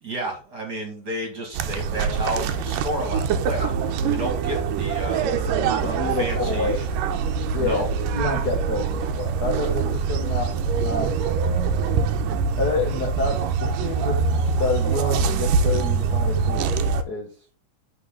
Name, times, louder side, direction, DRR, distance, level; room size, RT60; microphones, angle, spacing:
voice 1, 0.0-3.7 4.1-5.2 5.7-6.9 7.5-7.9, right 1 dB, 35° right, 2 dB, 2.2 m, -31 dB
sound 1, 1.5-17.0, right 5 dB, 75° right, 2.3 m, -24 dB
voice 2, 5.8-6.8 7.5-11.1 12.5-14.2 14.6-16.8 17.1-17.3, left 4 dB, 70° left, 1 dB, 0.9 m, -28 dB
10.0 x 4.7 x 3.8 m, 0.36 s
omnidirectional pair, 4.0 m